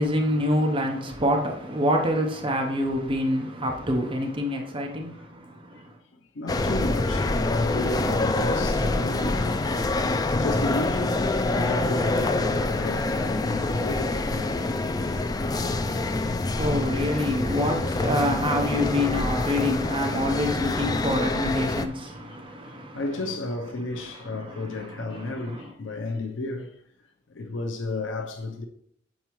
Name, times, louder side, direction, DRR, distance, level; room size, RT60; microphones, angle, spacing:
voice 1, 0.0-6.0 16.0-23.0 24.2-25.7, left 1 dB, 30° right, 0.7 m, -27 dB
voice 2, 6.3-9.6 10.3-11.2 11.4-14.7 15.1-15.4 16.3-16.5 16.9-17.0 17.3-17.5 18.9-19.2 22.3-22.4 22.6-26.8 27.3-28.7, left 2 dB, 70° left, 0.6 m, -32 dB
sound 1, 6.5-21.9, left 2 dB, 20° left, 0.3 m, -26 dB
7.3 x 4.6 x 3.0 m
head